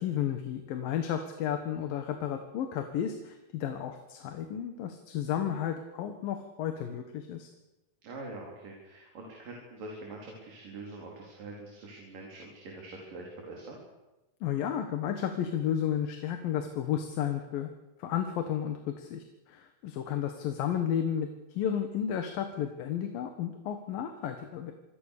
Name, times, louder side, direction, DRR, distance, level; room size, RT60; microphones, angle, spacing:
voice 1, 0.0-7.5 14.4-17.7 18.0-24.7, left 9 dB, 80° left, 6 dB, 3.2 m, -32 dB
voice 2, 8.0-13.8, right 2 dB, 70° right, -1 dB, 5.8 m, -44 dB
27.5 x 23.0 x 6.8 m, 1.0 s
omnidirectional pair, 4.0 m